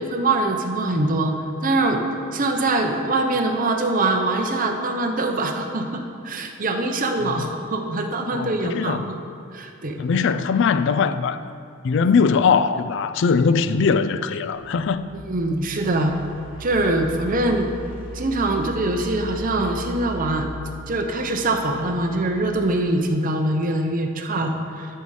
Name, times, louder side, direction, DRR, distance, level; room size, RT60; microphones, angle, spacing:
voice 1, 0.0-1.3 1.6-2.0 2.3-9.2 9.5-10.0 15.1-16.1 16.6-17.7 18.1-20.5 20.9-24.9, right 2 dB, 40° right, 0.7 m, -23 dB
voice 2, 8.3-9.2 10.0-11.4 11.8-15.1, left 5 dB, 55° left, 0.4 m, -21 dB
sound 1, 14.5-23.1, right 1 dB, 25° left, 1.6 m, -38 dB
12.0 x 5.6 x 4.8 m
head